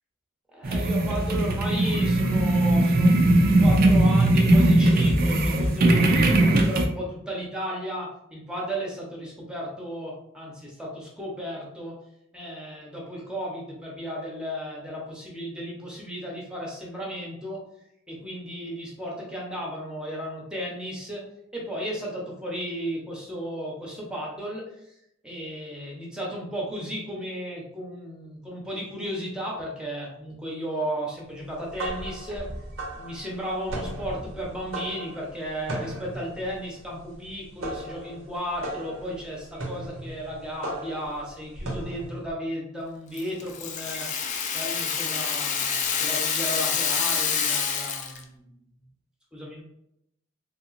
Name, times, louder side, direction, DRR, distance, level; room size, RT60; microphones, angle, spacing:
voice 1, 0.5-3.1 3.6-12.0 12.3-17.6 18.1-24.6 25.2-32.5 32.9-44.1 44.5-48.5 49.3-49.6, equal, 5° right, -3 dB, 0.8 m, -34 dB
sound 1, 0.6-6.9, right 1 dB, 50° right, 0.5 m, -19 dB
sound 2, 31.5-42.3, right 1 dB, 85° right, 0.9 m, -37 dB
Rattle (instrument), 43.2-48.2, left 6 dB, 40° left, 0.4 m, -27 dB
3.4 x 2.9 x 2.5 m, 0.78 s
head